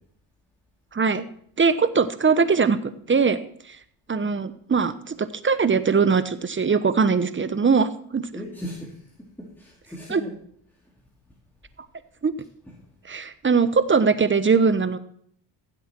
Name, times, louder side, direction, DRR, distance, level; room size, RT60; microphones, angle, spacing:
voice 1, 0.9-1.2 1.6-2.8 3.1-3.4 4.1-8.2 10.1-10.2 12.2-12.3 13.1-15.0, right 5 dB, 25° right, 13 dB, 1.0 m, -21 dB
voice 2, 8.3-10.3 12.7-12.8, equal, 5° left, -3 dB, 2.7 m, -38 dB
15.5 x 8.0 x 4.5 m, 0.64 s
supercardioid pair, 80°, 49 cm